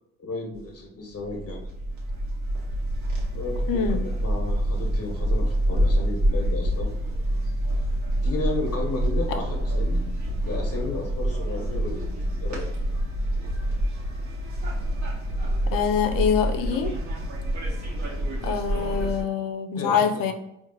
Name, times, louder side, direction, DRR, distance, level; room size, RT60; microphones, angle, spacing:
voice 1, 0.2-1.6 3.3-6.9 8.2-10.0 10.4-12.0 12.4-12.7 19.7-20.2, left 2 dB, 40° left, 1 dB, 1.7 m, -33 dB
sound 1, 0.5-0.7 1.2-19.2, equal, 50° right, 1.5 m, -27 dB
voice 2, 3.7-4.0 15.7-16.9 18.4-20.3, left 7 dB, 60° left, 6 dB, 0.7 m, -24 dB
4.6 x 3.3 x 3.0 m, 0.83 s
hypercardioid pair, 45°, 37 cm